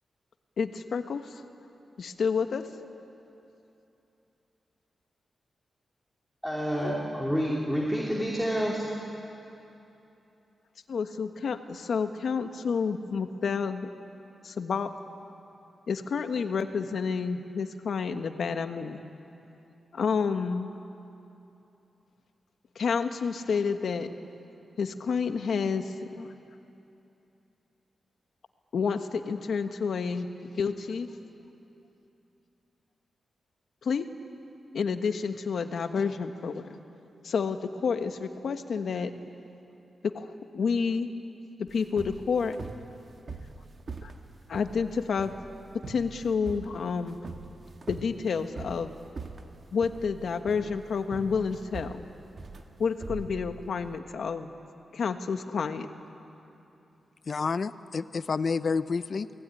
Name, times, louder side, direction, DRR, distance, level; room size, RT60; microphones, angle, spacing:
voice 1, 0.6-1.4 2.0-2.6 10.9-13.9 14.4-14.9 15.9-19.0 19.9-20.7 22.7-24.1 24.8-26.3 28.7-31.1 33.8-34.1 34.7-36.8 37.2-39.1 40.0-41.1 41.7-42.6 44.0-44.1 44.5-45.3 45.9-47.2 47.9-48.9 49.7-52.0 52.8-54.5 54.9-55.9, left 5 dB, 60° left, 7 dB, 1.4 m, -29 dB
voice 2, 6.4-8.8, equal, ahead, -4 dB, 2.9 m, -28 dB
sound 1, 41.7-53.9, right 3 dB, 40° right, 1.6 m, -43 dB
voice 3, 57.3-59.3, left 5 dB, 40° left, 13 dB, 0.7 m, -29 dB
29.0 x 19.5 x 9.9 m, 2.9 s
wide cardioid pair, 165°, 0 cm